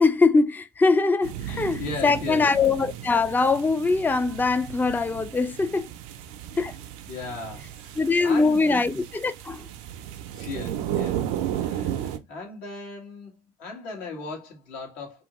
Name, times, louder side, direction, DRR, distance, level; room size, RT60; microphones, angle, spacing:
voice 1, 0.0-5.9 6.5-6.7 8.0-9.6, left 4 dB, 10° left, 0.4 m, -22 dB
sound 1, 1.2-12.2, right 11 dB, 80° right, 0.4 m, -34 dB
voice 2, 1.4-2.5 7.1-8.9 10.3-11.2 11.5-13.3 13.6-15.2, left 4 dB, 75° left, 1.3 m, -37 dB
2.8 x 2.6 x 2.9 m
hypercardioid pair, 65°, 15 cm